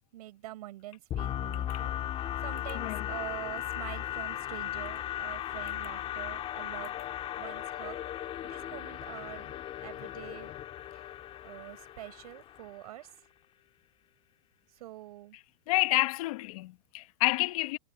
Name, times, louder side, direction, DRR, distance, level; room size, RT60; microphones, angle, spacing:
voice 1, 0.1-1.9 2.4-6.9 7.4-8.0 8.4-9.6 9.8-10.5 10.9-11.0 11.4-13.1 14.8-15.4, right 15 dB, 75° right, 7.1 m, -45 dB
sound 1, 1.1-12.9, left 12 dB, 30° left, 2.4 m, -37 dB
voice 2, 2.7-3.1 15.7-17.8, left 20 dB, 65° left, 1.3 m, -29 dB
supercardioid pair, 150°, 20 cm